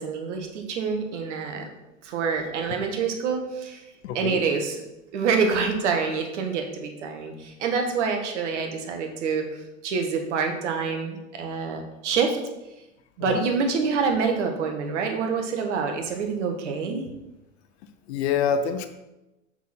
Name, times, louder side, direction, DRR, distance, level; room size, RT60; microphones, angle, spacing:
voice 1, 0.0-1.6 2.0-3.8 4.1-4.8 5.1-12.4 13.2-17.0, right 5 dB, 65° right, 4 dB, 1.5 m, -26 dB
voice 2, 4.0-4.4 13.3-13.5 18.1-18.9, left 7 dB, 55° left, 9 dB, 0.8 m, -25 dB
5.9 x 5.7 x 4.4 m, 0.97 s
hypercardioid pair, 95°, 39 cm